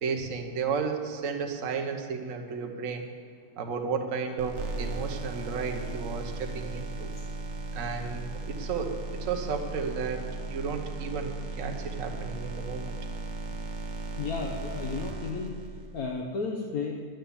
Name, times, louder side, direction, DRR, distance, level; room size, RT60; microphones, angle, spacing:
voice 1, 0.0-3.1 3.6-7.1 7.7-12.9, right 5 dB, 50° right, 4 dB, 1.3 m, -33 dB
sound 1, 4.4-16.0, right 2 dB, 80° right, 1.7 m, -36 dB
voice 2, 14.1-15.5 15.9-17.0, left 4 dB, 60° left, 0 dB, 1.3 m, -33 dB
11.5 x 9.2 x 7.1 m, 2.2 s
omnidirectional pair, 1.9 m